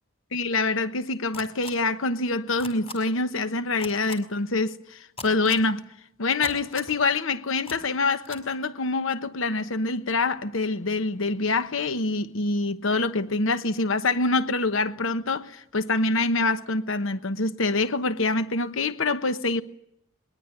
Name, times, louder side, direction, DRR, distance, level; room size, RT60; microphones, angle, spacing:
voice 1, 0.3-5.9 6.2-19.6, left 3 dB, 65° left, 1.1 m, -25 dB
sound 1, 1.3-1.7 2.6-2.9 3.8-4.1 5.2-5.6 6.4-6.9 7.6-7.8 8.2-8.4, left 3 dB, 25° left, 5.3 m, -38 dB
23.5 x 21.5 x 9.9 m
head